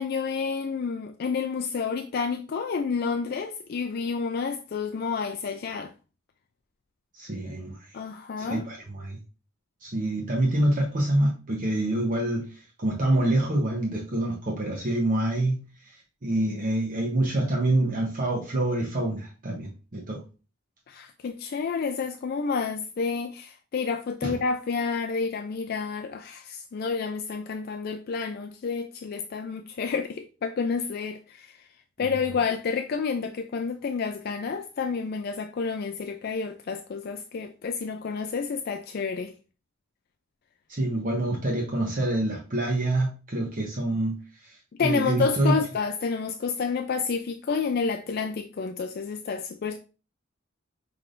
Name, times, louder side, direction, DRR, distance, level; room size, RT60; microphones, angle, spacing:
voice 1, 0.0-5.9 7.9-8.6 20.9-31.7 32.0-39.3 44.8-49.8, left 5 dB, 50° left, 0.4 m, -29 dB
voice 2, 7.1-8.0 8.4-9.2 9.8-15.6 15.8-20.2 24.2-24.4 40.7-45.6, right 1 dB, 45° right, 0.8 m, -26 dB
5.8 x 3.3 x 2.5 m
head